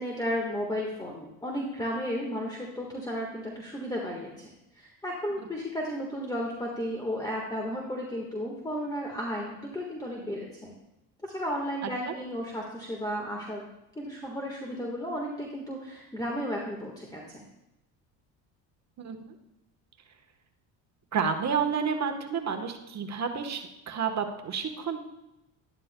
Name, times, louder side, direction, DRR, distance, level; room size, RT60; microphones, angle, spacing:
voice 1, 0.0-10.7 11.2-13.6 13.9-17.4, equal, 10° left, -1 dB, 1.5 m, -34 dB
voice 2, 11.8-12.1 19.0-19.3 21.1-25.0, right 6 dB, 40° right, 6 dB, 1.3 m, -30 dB
11.5 x 11.0 x 2.2 m, 0.92 s
supercardioid pair, 80°, 41 cm